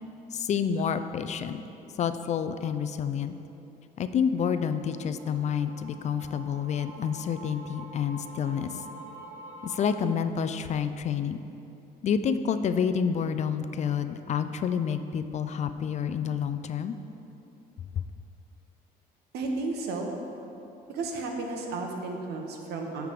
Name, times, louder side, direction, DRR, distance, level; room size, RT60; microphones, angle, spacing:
voice 1, 0.3-1.6 2.0-3.4 4.0-8.7 9.6-11.4 12.0-16.9, left 7 dB, 45° left, 10 dB, 0.4 m, -28 dB
sound 1, 4.2-10.0, right 2 dB, 55° right, 1.4 m, -46 dB
voice 2, 19.3-20.2 20.9-23.1, right 3 dB, 75° right, 2 dB, 1.1 m, -33 dB
9.3 x 3.5 x 6.6 m, 2.9 s
cardioid pair, 110°, 17 cm